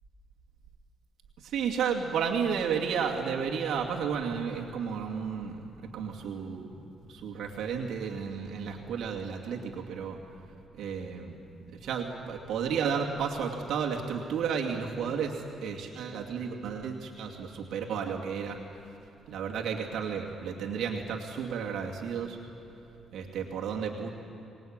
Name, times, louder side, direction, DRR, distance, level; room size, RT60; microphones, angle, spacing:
voice 1, 1.4-5.6 5.9-6.8 7.1-10.2 10.8-11.3 11.8-15.4 15.6-18.6 19.3-22.4 23.1-24.1, right 6 dB, 75° right, 0 dB, 2.4 m, -32 dB
25.0 x 20.0 x 8.9 m, 3.0 s
cardioid pair, 90°, 0 cm